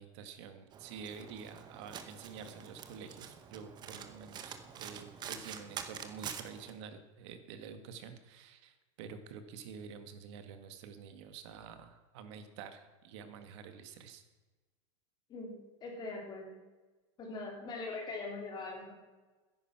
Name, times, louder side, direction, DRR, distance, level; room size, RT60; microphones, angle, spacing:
voice 1, 0.0-14.2, right 6 dB, 60° right, 8 dB, 1.8 m, -48 dB
Domestic sounds home sounds, 0.7-6.7, right 8 dB, 25° right, 1.1 m, -46 dB
voice 2, 15.3-16.6 17.2-18.9, left 3 dB, 25° left, 1 dB, 3.4 m, -42 dB
13.5 x 10.5 x 6.0 m, 1.2 s
supercardioid pair, 155°, 17 cm